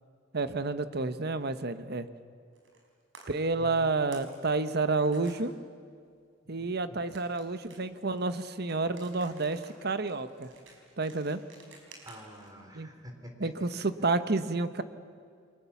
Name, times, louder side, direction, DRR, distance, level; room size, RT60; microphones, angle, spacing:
voice 1, 0.3-2.1 3.3-5.5 6.5-10.5 11.0-11.4 12.7-12.9 13.4-14.8, right 3 dB, 55° right, 11 dB, 1.1 m, -30 dB
sound 1, 2.5-2.9 3.1-3.3 3.8-4.4 4.6-5.4 7.1-12.5, right 4 dB, 80° right, 5.5 m, -54 dB
voice 2, 3.5-3.9 6.4-7.0 12.0-13.7, equal, 20° right, 4 dB, 3.5 m, -48 dB
29.5 x 23.5 x 7.2 m, 2.2 s
head